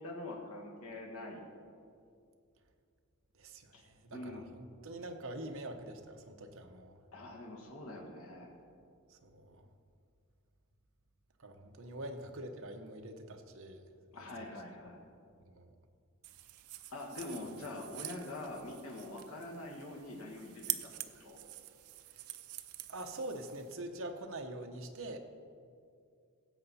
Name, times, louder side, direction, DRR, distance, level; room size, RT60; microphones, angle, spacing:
voice 1, 0.0-1.4 3.7-3.8 4.1-4.4 7.1-8.5 14.1-15.0 16.9-20.9 21.2-21.4, left 2 dB, 75° left, -1 dB, 1.6 m, -44 dB
voice 2, 3.4-7.0 9.1-9.7 11.4-13.8 14.4-14.5 15.4-15.7 22.9-25.2, right 1 dB, 65° right, 5 dB, 0.9 m, -45 dB
sound 1, 16.2-23.7, right 15 dB, 85° right, 0.5 m, -45 dB
16.0 x 7.8 x 4.2 m, 2.3 s
head